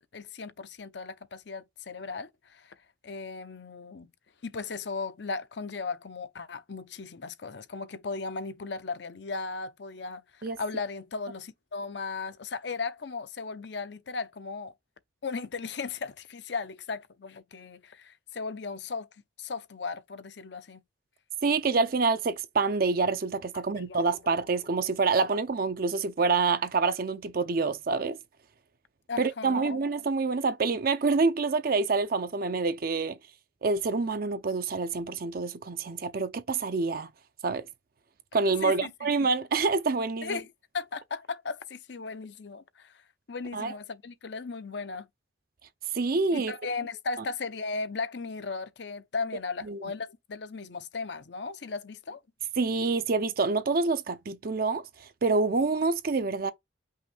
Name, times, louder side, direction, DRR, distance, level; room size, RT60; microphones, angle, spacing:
voice 1, 0.1-2.7 3.0-4.1 4.4-14.7 15.2-19.1 19.4-20.8 23.5-24.1 29.1-29.8 38.6-39.1 40.2-40.5 40.7-43.0 43.3-45.1 46.3-52.2, left 4 dB, 65° left, 0.7 m, -36 dB
voice 2, 21.4-28.2 29.2-33.2 33.6-37.1 37.4-37.6 38.3-40.4 43.5-43.7 45.9-46.5 49.7-49.8 52.6-54.8 55.2-56.5, right 4 dB, 50° right, 0.5 m, -27 dB
5.6 x 2.6 x 3.5 m
head